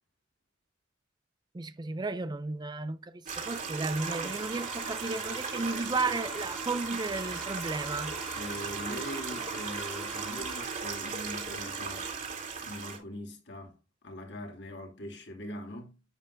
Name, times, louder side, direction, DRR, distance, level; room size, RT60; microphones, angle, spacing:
voice 1, 1.5-8.1, right 3 dB, 20° right, 0.4 m, -34 dB
Stream, 3.3-13.0, right 5 dB, 45° right, 2.6 m, -37 dB
sound 1, 4.0-10.6, equal, ahead, 2.0 m, -46 dB
voice 2, 8.4-12.1 12.6-16.0, equal, 60° left, 2.5 m, -42 dB
10.5 x 7.9 x 2.6 m
head